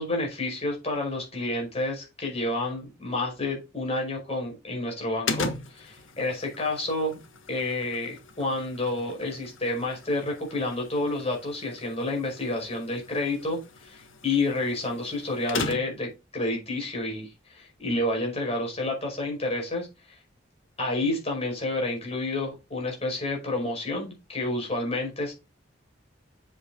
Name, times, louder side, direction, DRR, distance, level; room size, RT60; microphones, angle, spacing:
voice 1, 0.0-7.2 7.5-20.2 20.8-25.3, left 2 dB, 30° left, 0 dB, 5.3 m, -29 dB
sound 1, 5.3-16.1, left 3 dB, 85° left, 1.5 m, -38 dB
7.9 x 7.7 x 3.8 m, 0.26 s
head